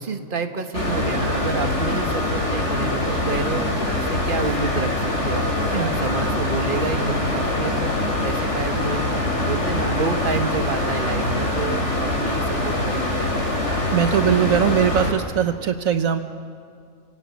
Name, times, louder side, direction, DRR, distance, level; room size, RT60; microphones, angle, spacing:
voice 1, 0.0-7.9 8.2-13.4, right 4 dB, 40° right, 6 dB, 1.6 m, -29 dB
sound 1, 0.7-15.1, left 1 dB, 55° left, 3.6 m, -24 dB
voice 2, 13.9-16.2, right 9 dB, 75° right, 8 dB, 1.4 m, -21 dB
29.5 x 16.5 x 9.5 m, 2.2 s
omnidirectional pair, 1.5 m